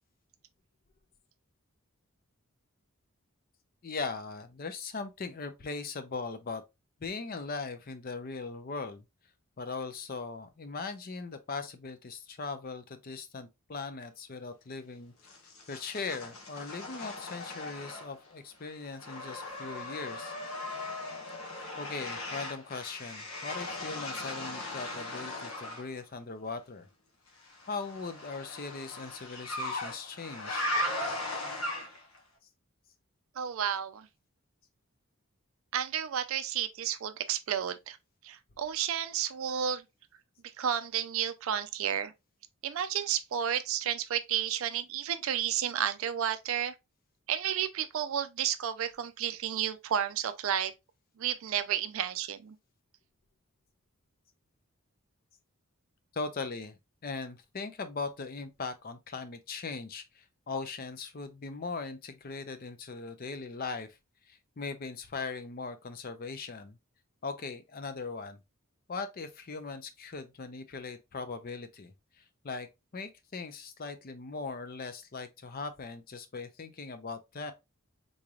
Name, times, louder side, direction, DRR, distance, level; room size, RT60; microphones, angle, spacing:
voice 1, 3.8-6.6 7.0-9.0 9.6-15.1 15.7-20.3 21.8-26.9 27.7-30.7 56.1-63.9 64.3-66.8 67.2-68.4 68.9-72.7 72.9-77.5, left 4 dB, 40° left, 0.5 m, -39 dB
sound 1, 15.3-18.3 18.6-25.9 27.4-32.2, left 1 dB, 80° left, 1.1 m, -38 dB
voice 2, 33.4-34.1 35.7-38.0 38.2-39.8 40.6-42.1 42.6-46.7 47.3-50.7 51.2-52.6, right 9 dB, 70° right, 0.4 m, -32 dB
3.9 x 3.2 x 2.3 m
head